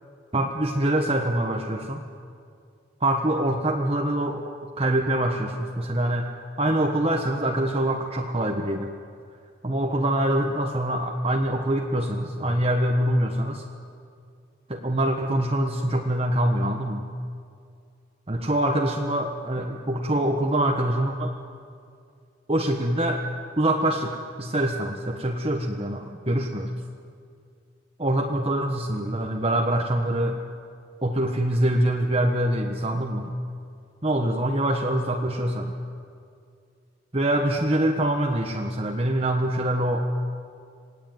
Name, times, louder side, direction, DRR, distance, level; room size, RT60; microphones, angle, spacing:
voice 1, 0.3-2.0 3.0-6.3 6.6-8.9 9.6-13.6 14.7-17.0 18.3-21.3 22.5-23.2 23.6-26.7 28.0-30.4 31.0-33.3 34.0-35.8 37.1-40.0, right 1 dB, 30° right, 1 dB, 1.4 m, -24 dB
27.0 x 19.0 x 9.5 m, 2.3 s
head